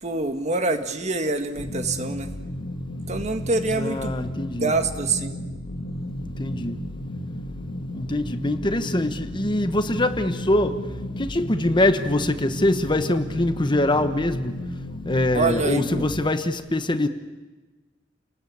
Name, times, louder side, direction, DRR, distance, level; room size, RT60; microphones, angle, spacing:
voice 1, 0.0-2.3 3.1-4.1 4.6-5.4 15.3-16.1, right 3 dB, 40° right, 1.7 m, -25 dB
sound 1, 1.6-16.2, left 1 dB, 80° left, 2.2 m, -33 dB
voice 2, 3.8-4.7 6.4-6.8 7.9-10.8 11.2-14.5 15.0-17.1, left 1 dB, 25° left, 1.1 m, -23 dB
29.5 x 19.5 x 8.7 m
head